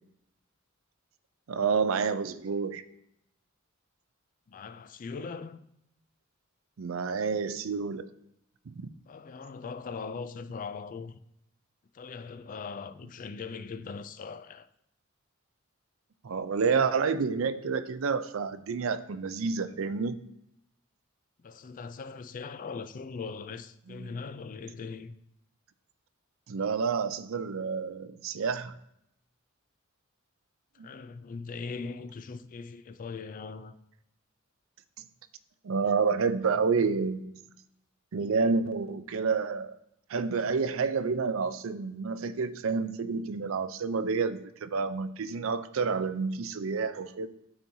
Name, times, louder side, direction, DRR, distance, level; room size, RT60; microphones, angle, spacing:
voice 1, 1.5-2.8 6.8-8.1 16.2-20.2 23.9-24.1 26.5-28.7 30.8-30.9 35.6-37.2 38.1-39.7 40.1-47.3, right 5 dB, 70° right, 0.5 m, -29 dB
voice 2, 4.5-5.6 9.1-11.2 11.9-14.7 21.4-25.2 30.8-33.8, left 4 dB, 40° left, 0.4 m, -40 dB
12.5 x 4.5 x 2.7 m
head